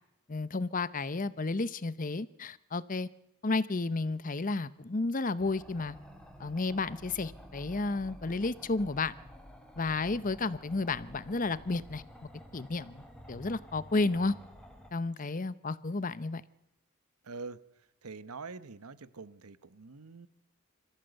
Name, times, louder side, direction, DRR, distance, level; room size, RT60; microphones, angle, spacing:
voice 1, 0.3-3.1 3.4-6.0 6.4-9.1 9.8-12.0 12.5-13.0 13.3-14.3 14.9-16.4, left 3 dB, 35° left, 17 dB, 0.7 m, -32 dB
sound 1, 5.4-14.9, equal, 5° left, 2.3 m, -51 dB
voice 2, 17.2-17.6 18.0-20.3, right 4 dB, 80° right, 16 dB, 1.0 m, -44 dB
25.0 x 15.0 x 8.0 m, 0.86 s
head